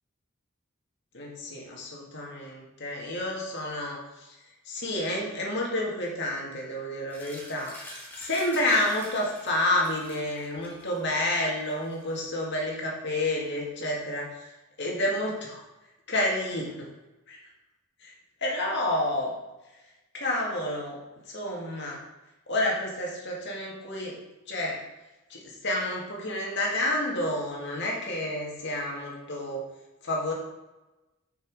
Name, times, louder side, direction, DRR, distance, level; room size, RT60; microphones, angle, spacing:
voice 1, 1.1-4.3 4.7-14.5 14.8-15.6 16.1-16.9 17.3-17.4 18.0-18.1 18.4-19.3 20.1-21.0 21.3-22.0 22.5-24.2 24.5-24.8 25.3-29.6 30.0-30.3, left 1 dB, 55° left, -2 dB, 2.1 m, -29 dB
sound 1, 7.1-12.2, left 1 dB, 10° left, 1.7 m, -47 dB
6.9 x 6.1 x 4.8 m, 1.0 s
head